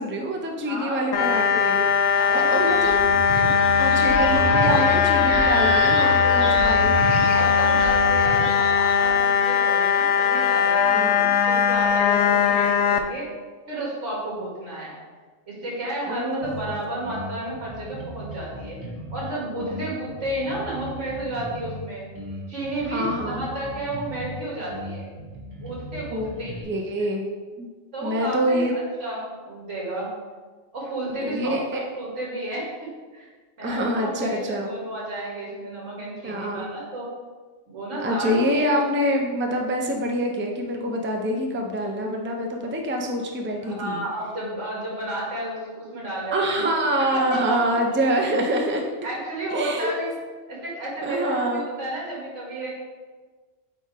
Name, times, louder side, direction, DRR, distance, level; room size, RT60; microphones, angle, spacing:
voice 1, 0.0-1.9 2.3-3.0 3.8-7.1 10.9-11.3 16.1-16.8 19.6-19.7 22.9-23.5 26.1-26.3 26.7-27.3 27.6-27.7 28.0-28.7 31.2-31.8 33.6-34.7 36.2-36.6 38.0-44.0 46.3-48.8 49.5-49.9 51.0-51.6, equal, 15° right, 2 dB, 0.5 m, -26 dB
voice 2, 0.6-1.1 2.1-2.9 4.5-5.2 6.0-7.0 7.3-13.3 13.7-15.0 15.5-18.8 19.1-22.1 22.5-25.1 25.6-27.1 27.9-30.1 30.7-33.3 33.6-37.1 37.7-38.4 38.7-38.8 43.6-46.7 47.1-47.6 49.0-50.1 50.5-52.7, right 1 dB, 85° right, -5 dB, 2.2 m, -32 dB
sound 1, 1.1-13.0, left 7 dB, 75° left, 0.9 m, -20 dB
sound 2, 2.5-9.2, right 3 dB, 70° right, 1.0 m, -28 dB
sound 3, 16.4-16.7 17.0-19.2 19.6-21.8 22.1-24.4 24.7-26.6, right 1 dB, 55° right, 1.6 m, -38 dB
8.1 x 2.8 x 4.7 m, 1.4 s
omnidirectional pair, 1.2 m